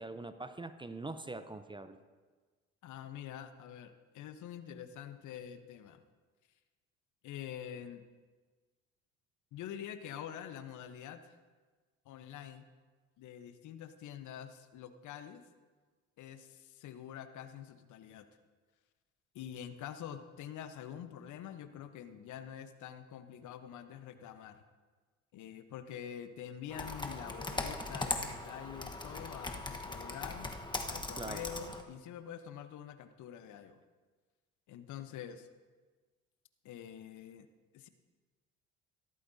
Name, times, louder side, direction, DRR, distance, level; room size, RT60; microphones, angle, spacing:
voice 1, 0.0-2.0 31.2-31.4, right 2 dB, 15° right, 10 dB, 0.6 m, -43 dB
voice 2, 2.8-6.0 7.2-8.0 9.5-11.4 12.0-12.6 13.2-15.4 16.2-18.3 19.3-24.6 25.3-30.5 30.9-33.8 34.7-35.5 36.6-37.5 37.7-37.9, left 9 dB, 55° left, 10 dB, 1.0 m, -46 dB
Computer keyboard, 26.7-31.8, left 2 dB, 15° left, 1.2 m, -39 dB
16.0 x 13.5 x 2.8 m, 1.4 s
hypercardioid pair, 65°, 35 cm